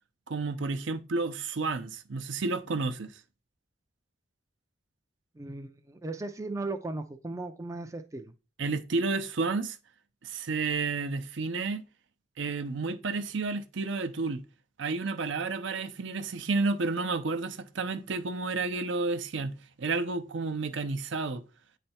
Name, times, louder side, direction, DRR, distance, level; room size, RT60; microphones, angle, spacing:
voice 1, 0.3-3.1 8.6-9.8 10.2-11.8 12.4-14.4 14.8-21.4, right 3 dB, 65° right, 0.6 m, -31 dB
voice 2, 5.4-8.3, right 2 dB, 15° right, 0.4 m, -37 dB
8.7 x 3.3 x 4.3 m
head